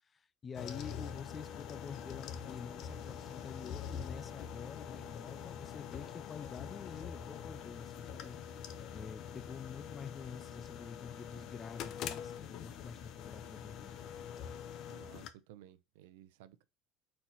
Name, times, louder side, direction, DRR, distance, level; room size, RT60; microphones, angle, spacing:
voice 1, 0.1-8.4 8.9-14.0, left 6 dB, 25° left, 0.4 m, -48 dB
sound 1, 0.5-15.3, left 8 dB, 55° left, 0.7 m, -44 dB
voice 2, 14.9-16.6, right 12 dB, 90° right, 0.6 m, -57 dB
4.4 x 4.1 x 5.7 m
supercardioid pair, 130°, 0 cm